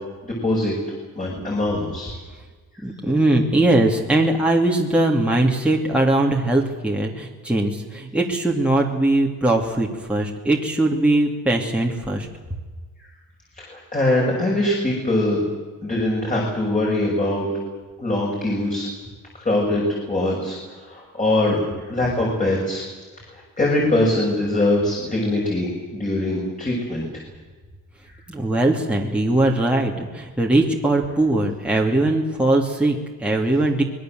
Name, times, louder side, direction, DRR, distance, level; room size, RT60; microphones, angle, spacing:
voice 1, 0.2-0.7 1.1-2.1 13.6-15.4 15.8-17.5 18.0-18.9 19.4-21.6 21.9-22.8 23.3-27.0, left 1 dB, 20° left, -2 dB, 6.7 m, -22 dB
voice 2, 2.8-12.3 28.3-33.8, right 2 dB, 5° right, -1 dB, 2.7 m, -20 dB
25.5 x 21.0 x 7.8 m, 1.4 s
cardioid pair, 125°, 34 cm